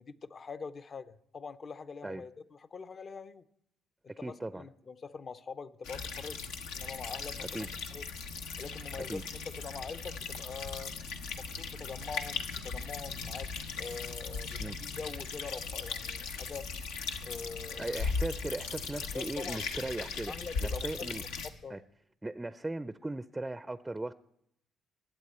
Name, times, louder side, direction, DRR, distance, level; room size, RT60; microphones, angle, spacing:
voice 1, 0.0-3.4 4.0-6.4 6.7-8.0 8.6-10.9 11.3-13.5 13.8-16.7 17.2-18.0 19.1-19.6 20.0-21.3 21.6-21.8, left 5 dB, 45° left, 0.6 m, -44 dB
voice 2, 4.1-4.6 7.5-7.7 9.1-9.2 14.6-14.8 17.8-20.3 20.6-21.2 21.7-21.8 22.2-24.1, right 2 dB, 15° right, 0.4 m, -38 dB
sound 1, 5.8-21.5, left 4 dB, 90° left, 0.8 m, -38 dB
20.5 x 8.0 x 4.3 m
supercardioid pair, 65°, 0 cm